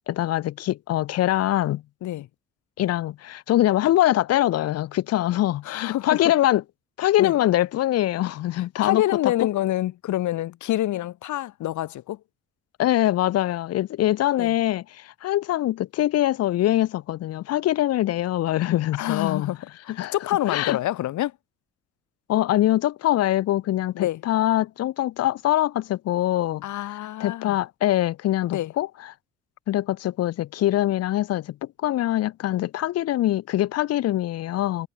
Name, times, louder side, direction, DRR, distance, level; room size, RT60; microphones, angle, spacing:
voice 1, 0.1-1.8 2.8-6.6 7.0-9.3 12.8-19.5 20.0-20.1 20.5-20.8 22.3-29.1 29.7-31.6 31.8-34.9, left 14 dB, 55° left, 0.5 m, -23 dB
voice 2, 5.6-6.2 7.2-7.3 8.6-12.2 14.4-14.5 19.0-21.3 23.9-24.2 26.6-27.6 28.5-28.7, left 14 dB, 75° left, 1.0 m, -27 dB
cardioid pair, 90°, 30 cm